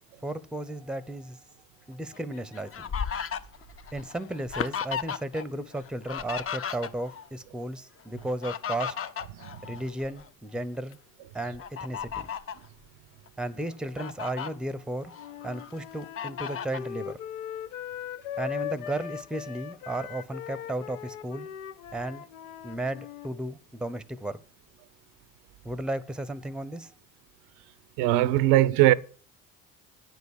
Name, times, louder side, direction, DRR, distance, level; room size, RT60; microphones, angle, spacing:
voice 1, 0.2-1.4 1.9-2.9 3.9-9.0 9.6-11.0 11.3-12.3 13.4-15.1 15.4-17.2 18.4-21.5 21.9-22.2 22.6-24.4 25.6-26.9, right 1 dB, ahead, 0.7 m, -34 dB
Fowl, 2.1-5.4 5.7-7.3 8.2-10.3 10.7-10.9 11.6-12.6 13.3-13.4 13.7-14.5 15.0-15.7 16.2-16.9, left 7 dB, 35° left, 0.8 m, -35 dB
Wind instrument woodwind instrument, 15.2-23.3, left 10 dB, 80° left, 0.6 m, -39 dB
voice 2, 28.0-28.9, right 15 dB, 65° right, 0.6 m, -20 dB
9.2 x 5.3 x 8.1 m
hypercardioid pair, 55°, 41 cm